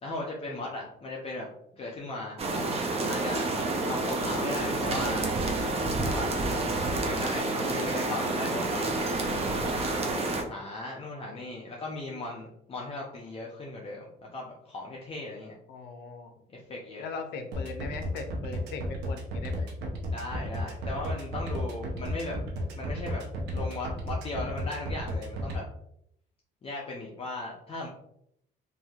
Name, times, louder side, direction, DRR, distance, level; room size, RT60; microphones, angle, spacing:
voice 1, 0.0-1.5 1.7-2.4 3.1-3.5 3.8-5.3 5.9-6.3 6.8-9.7 10.5-15.6 16.5-17.0 20.1-22.4 22.8-23.2 23.5-25.6 26.6-27.9, left 2 dB, 35° left, -3 dB, 0.6 m, -37 dB
sound 1, 2.4-10.4, right 2 dB, 35° right, 0.5 m, -29 dB
voice 2, 15.7-16.3 17.0-19.9, left 4 dB, 80° left, 6 dB, 0.5 m, -40 dB
sound 2, 17.5-25.6, equal, 90° right, 0.7 m, -33 dB
3.0 x 2.6 x 2.4 m, 0.73 s
cardioid pair, 110°, 17 cm